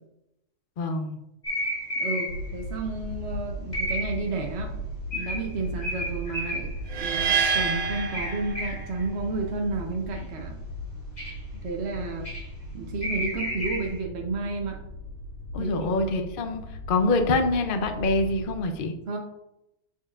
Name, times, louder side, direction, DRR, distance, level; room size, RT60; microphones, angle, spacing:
voice 1, 0.8-1.2 15.5-18.9, left 2 dB, 50° left, 6 dB, 0.8 m, -25 dB
sound 1, 1.4-2.6 3.7-4.3 5.1-6.9 7.9-9.0 10.2-10.3 11.2-11.4 12.2-12.5 13.0-14.0, equal, 35° left, 2.6 m, -32 dB
voice 2, 2.0-4.7 5.1-6.7 7.0-10.6 11.6-12.3 12.7-14.8 15.6-15.9 19.1-19.2, right 3 dB, 60° right, 1 dB, 1.1 m, -31 dB
sound 2, 2.3-18.6, equal, 90° left, 1.5 m, -38 dB
sound 3, 6.9-9.1, right 6 dB, 90° right, 0.3 m, -27 dB
7.2 x 6.6 x 2.5 m, 0.85 s
omnidirectional pair, 1.3 m